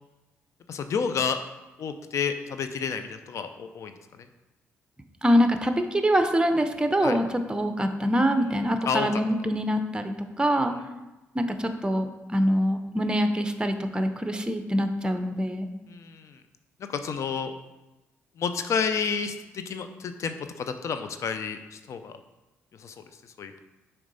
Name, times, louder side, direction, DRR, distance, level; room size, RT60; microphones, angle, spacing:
voice 1, 0.7-1.4 1.8-3.9 7.0-7.2 8.9-9.1 15.9-16.4 16.9-17.5 18.4-22.1 22.8-22.9 23.4-23.6, left 6 dB, 60° left, 9 dB, 0.6 m, -30 dB
voice 2, 5.2-10.7 11.3-15.7, equal, 15° right, 7 dB, 0.8 m, -24 dB
6.1 x 4.6 x 4.0 m, 1.0 s
supercardioid pair, 55°, 6 cm